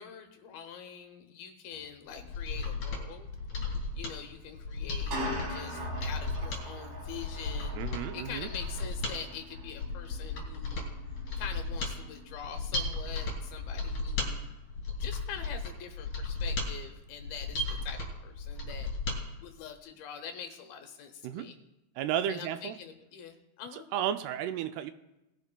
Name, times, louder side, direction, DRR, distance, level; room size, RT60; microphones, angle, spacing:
voice 1, 0.0-3.3 3.9-7.8 8.1-10.9 11.4-14.4 15.0-18.9 19.4-21.6 22.3-23.9, left 7 dB, 75° left, 6 dB, 2.5 m, -44 dB
sound 1, 1.7-1.9 2.1-2.3 3.7-3.8 4.8-13.9, right 1 dB, 60° right, 4.9 m, -43 dB
Mechanisms, 2.1-19.2 19.5-19.6, left 3 dB, 45° left, 4.3 m, -35 dB
voice 2, 7.8-8.5 21.2-21.5 22.0-22.8 23.7-24.9, right 10 dB, 85° right, 9 dB, 2.4 m, -33 dB
20.0 x 13.0 x 2.2 m, 0.95 s
omnidirectional pair, 4.8 m